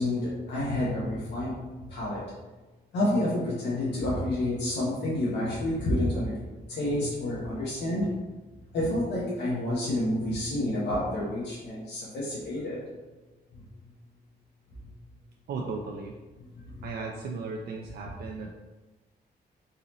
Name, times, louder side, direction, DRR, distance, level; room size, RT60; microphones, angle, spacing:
voice 1, 0.0-2.2 2.9-6.4 6.7-8.1 8.7-12.8, left 1 dB, 90° left, -7 dB, 1.1 m, -29 dB
voice 2, 15.5-16.2 16.8-18.5, right 4 dB, 65° right, 0 dB, 0.4 m, -36 dB
4.1 x 2.9 x 3.9 m, 1.2 s
wide cardioid pair, 170°, 18 cm